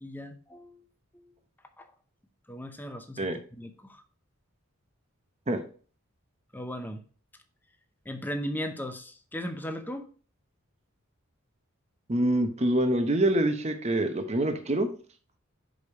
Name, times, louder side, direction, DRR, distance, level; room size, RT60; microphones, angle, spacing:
voice 1, 0.0-0.8 1.1-1.3 1.8-1.9 2.5-4.0 6.5-7.0 8.1-10.1, equal, 10° left, 0.6 m, -37 dB
voice 2, 12.1-14.9, right 1 dB, 30° right, 0.8 m, -25 dB
5.3 x 4.9 x 4.6 m
head